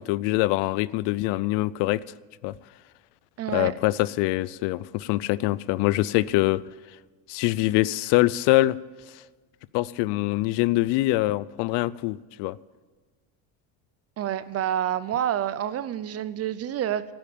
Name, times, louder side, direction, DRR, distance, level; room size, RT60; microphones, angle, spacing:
voice 1, 0.0-2.0 2.4-2.6 3.5-6.6 7.3-8.8 9.1-9.2 9.7-12.6, left 18 dB, 70° left, 20 dB, 0.5 m, -24 dB
voice 2, 3.4-3.7 14.2-17.1, right 10 dB, 35° right, 16 dB, 0.6 m, -28 dB
13.0 x 8.9 x 8.5 m, 1.4 s
cardioid pair, 135°, 42 cm